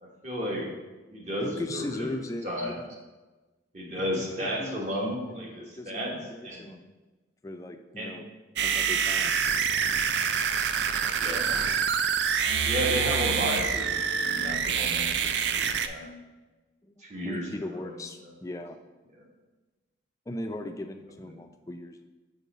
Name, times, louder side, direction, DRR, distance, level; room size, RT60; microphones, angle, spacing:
voice 1, 0.0-0.7 1.1-2.1 2.4-2.7 3.7-6.2 6.4-6.7 8.0-8.1 11.1-11.6 12.6-16.1 17.0-17.5 17.8-17.9, equal, 40° right, -2 dB, 1.2 m, -33 dB
voice 2, 1.4-3.0 4.0-4.8 5.2-6.9 7.4-8.3 8.6-9.4 16.8-18.8 20.3-22.1, left 1 dB, 20° left, 6 dB, 0.3 m, -38 dB
sound 1, 8.6-15.9, right 7 dB, 70° right, 0.4 m, -26 dB
5.3 x 4.9 x 4.1 m, 1.2 s
head